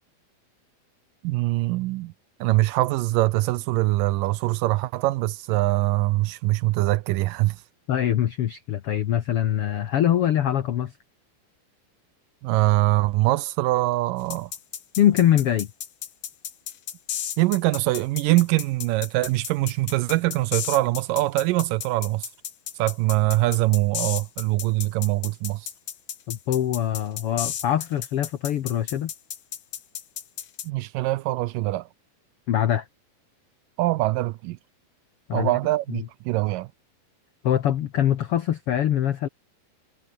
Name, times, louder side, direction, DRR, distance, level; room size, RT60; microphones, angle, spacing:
voice 1, 1.2-2.1 2.4-7.6 12.4-14.5 17.4-22.3 22.8-25.7 30.6-31.9 33.8-34.6 35.3-36.7, right 18 dB, 80° right, 2.1 m, -23 dB
voice 2, 7.9-10.9 15.0-15.7 26.3-29.1 32.5-32.9 35.3-35.5 35.9-36.0 37.4-39.3, left 11 dB, 85° left, 1.2 m, -23 dB
sound 1, 14.3-30.7, left 10 dB, 60° left, 3.0 m, -33 dB
omnidirectional pair, 4.2 m